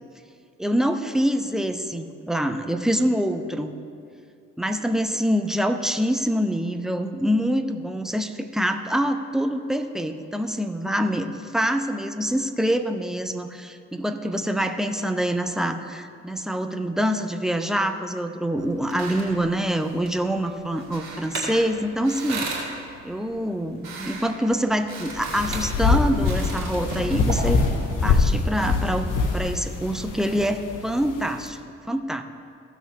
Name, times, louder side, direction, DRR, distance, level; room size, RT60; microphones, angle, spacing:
voice 1, 0.6-3.7 4.6-22.5 23.0-27.6 28.0-31.6 31.9-32.2, equal, ahead, 7 dB, 0.7 m, -25 dB
sound 1, 18.6-28.3, right 3 dB, 75° right, 2.1 m, -36 dB
sound 2, 25.1-31.5, left 4 dB, 55° left, 1.2 m, -24 dB
15.5 x 6.3 x 3.4 m, 2.4 s
figure-of-eight pair, 40°, 37 cm